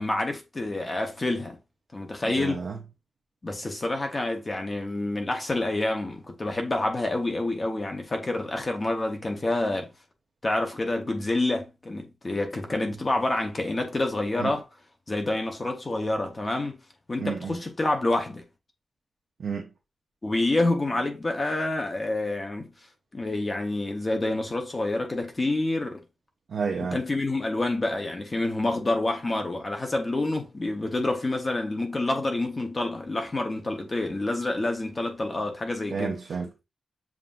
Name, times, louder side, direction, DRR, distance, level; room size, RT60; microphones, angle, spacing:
voice 1, 0.0-1.6 1.9-2.6 3.4-9.9 10.4-14.6 15.1-16.8 17.1-18.4 20.2-22.7 23.1-26.0 26.9-36.2, left 2 dB, 25° left, 0.7 m, -28 dB
voice 2, 2.2-2.8 14.4-14.5 17.2-17.6 19.4-19.7 26.5-27.0 35.9-36.6, right 5 dB, 65° right, 0.7 m, -31 dB
7.2 x 2.6 x 2.4 m
wide cardioid pair, 170°, 0 cm